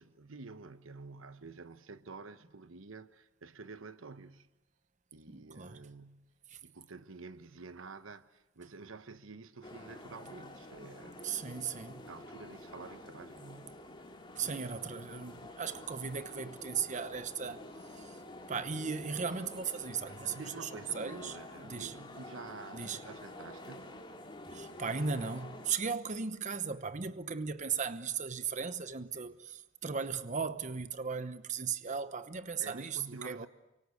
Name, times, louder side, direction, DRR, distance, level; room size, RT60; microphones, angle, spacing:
voice 1, 0.0-4.5 5.1-6.3 6.6-11.4 12.0-13.8 14.4-15.2 18.5-18.6 20.2-24.0 25.8-26.0 29.1-29.4 32.6-33.5, right 4 dB, 70° right, 1.0 m, -49 dB
voice 2, 5.3-5.8 6.5-6.6 11.2-12.1 14.4-17.6 17.9-18.2 18.5-21.4 21.6-21.9 22.7-23.0 24.5-33.5, right 6 dB, 35° right, 0.9 m, -37 dB
sound 1, 9.6-25.7, left 1 dB, 25° left, 3.4 m, -49 dB
29.0 x 24.5 x 8.4 m
head